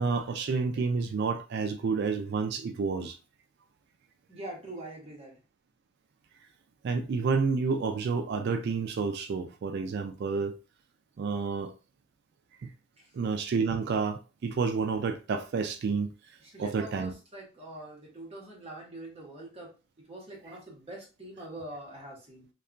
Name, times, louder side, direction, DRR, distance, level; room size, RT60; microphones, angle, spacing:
voice 1, 0.0-3.2 6.8-10.6 11.2-11.7 12.6-12.7 13.1-16.1 16.6-17.1 20.5-20.6, right 4 dB, 50° right, 0.3 m, -29 dB
voice 2, 4.3-5.4 13.0-13.1 16.4-22.5, right 1 dB, 30° right, 1.0 m, -44 dB
2.8 x 2.3 x 2.4 m
head